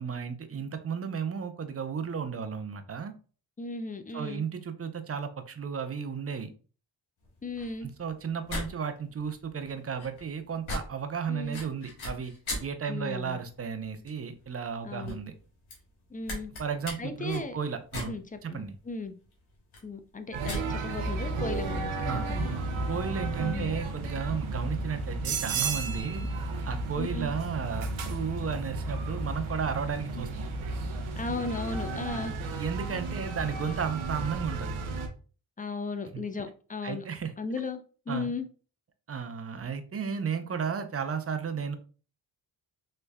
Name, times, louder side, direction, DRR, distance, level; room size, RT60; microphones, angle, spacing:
voice 1, 0.0-3.1 4.1-6.5 7.8-12.3 12.6-15.3 16.6-18.2 18.4-18.8 22.0-22.3 22.9-26.2 26.6-30.4 32.6-34.7 36.1-36.2 36.8-37.3 38.1-38.3 39.1-41.8, right 6 dB, 30° right, 8 dB, 0.6 m, -34 dB
voice 2, 3.6-4.5 7.4-7.9 11.3-11.6 12.9-13.4 14.8-15.2 16.1-16.5 17.0-17.6 18.1-19.2 19.8-21.9 22.3-22.5 23.4-23.8 27.0-27.3 30.2-30.3 31.2-32.3 35.6-37.0 37.4-38.5, left 3 dB, 20° left, 8 dB, 0.4 m, -36 dB
sound 1, 7.2-22.5, left 1 dB, 80° left, 1.2 m, -42 dB
sound 2, 20.3-35.1, right 3 dB, 75° right, 0.7 m, -33 dB
3.2 x 3.1 x 2.2 m, 0.39 s
supercardioid pair, 50°, 47 cm